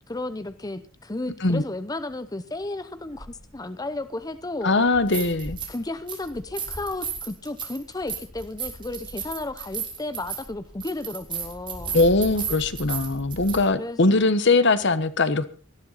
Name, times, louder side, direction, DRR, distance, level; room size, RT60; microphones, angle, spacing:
voice 1, 0.1-4.7 5.7-12.0 13.7-14.1, left 2 dB, 20° left, 11 dB, 0.7 m, -33 dB
sound 1, 3.2-3.3 4.9-5.8 6.1-13.6, right 6 dB, 25° right, 4.0 m, -34 dB
voice 2, 4.6-5.6 11.9-15.5, left 3 dB, 60° left, 13 dB, 1.2 m, -21 dB
19.0 x 13.5 x 4.1 m, 0.39 s
head